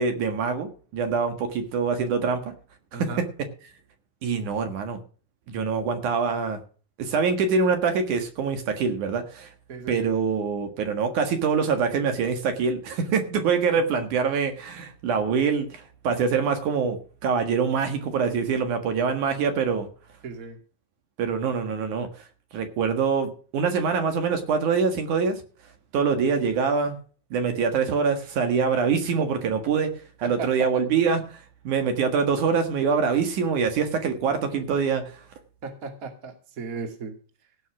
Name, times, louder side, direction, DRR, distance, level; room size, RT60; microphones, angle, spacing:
voice 1, 0.0-2.5 2.9-3.1 4.2-5.0 5.5-6.6 7.0-9.5 9.9-19.9 21.2-22.1 22.5-25.4 25.9-27.0 27.3-29.9 30.2-35.1, right 5 dB, 65° right, 6 dB, 3.0 m, -24 dB
voice 2, 2.9-3.2 9.7-10.1 20.2-20.6 30.2-30.8 35.6-37.1, right 4 dB, 30° right, 5 dB, 2.2 m, -36 dB
17.0 x 6.3 x 6.0 m, 0.40 s
omnidirectional pair, 3.9 m